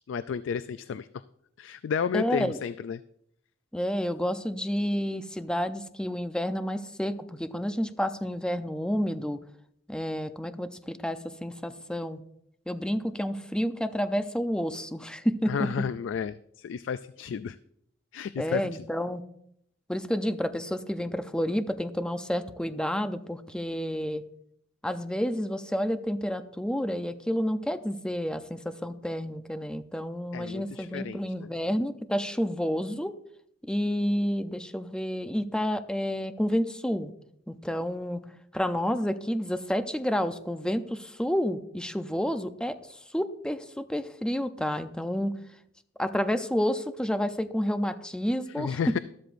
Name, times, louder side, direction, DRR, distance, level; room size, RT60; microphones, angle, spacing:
voice 1, 0.1-1.1 1.6-3.0 15.5-17.6 18.1-18.8 30.3-31.5 48.5-49.0, left 7 dB, 70° left, 14 dB, 0.3 m, -32 dB
voice 2, 2.1-2.6 3.7-9.4 9.9-12.2 12.7-15.7 18.4-19.2 19.9-24.2 24.8-33.2 33.6-37.1 37.5-38.2 38.5-42.8 43.1-45.4 46.0-49.0, equal, 5° left, 9 dB, 0.6 m, -30 dB
13.0 x 13.0 x 2.6 m, 0.73 s
head